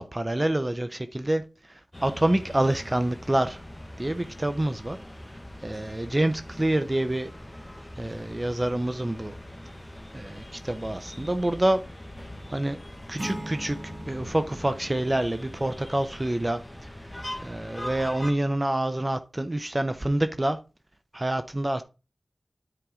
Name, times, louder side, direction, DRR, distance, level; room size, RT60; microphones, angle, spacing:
voice 1, 0.0-3.6 4.0-5.0 5.6-7.3 8.0-9.4 10.1-11.8 12.5-12.8 13.1-17.1 17.4-20.6 21.1-21.8, right 1 dB, 25° right, 0.8 m, -27 dB
sound 1, 1.9-18.3, left 1 dB, 15° left, 1.6 m, -42 dB
sound 2, 13.2-16.0, right 1 dB, 50° right, 2.9 m, -40 dB
9.9 x 4.6 x 3.8 m
wide cardioid pair, 55°, 0 cm